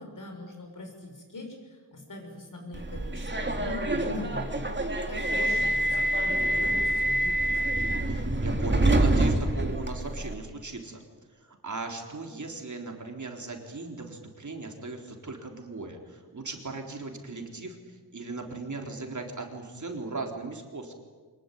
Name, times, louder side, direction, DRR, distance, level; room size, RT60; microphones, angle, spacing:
voice 1, 0.0-7.6, left 2 dB, 50° left, 3 dB, 6.6 m, -42 dB
Subway metro underground, 2.7-10.3, right 1 dB, 25° right, 2.9 m, -26 dB
voice 2, 8.1-11.0 11.3-20.9, right 3 dB, 45° right, 2 dB, 3.9 m, -38 dB
24.5 x 21.5 x 9.4 m, 1.4 s
wide cardioid pair, 110°, 40 cm